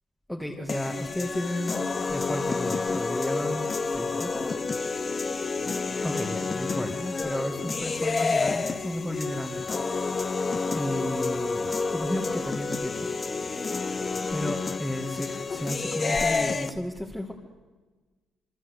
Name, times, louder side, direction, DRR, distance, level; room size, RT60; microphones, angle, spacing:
voice 1, 0.3-4.6 6.0-9.6 10.7-13.1 14.3-17.3, left 1 dB, 5° left, 0 dB, 2.3 m, -33 dB
sound 1, 0.7-16.7, left 4 dB, 35° left, 1.2 m, -29 dB
sound 2, 5.0-15.7, left 6 dB, 75° left, 2.2 m, -51 dB
26.5 x 23.5 x 8.4 m, 1.3 s
cardioid pair, 90°, 0 cm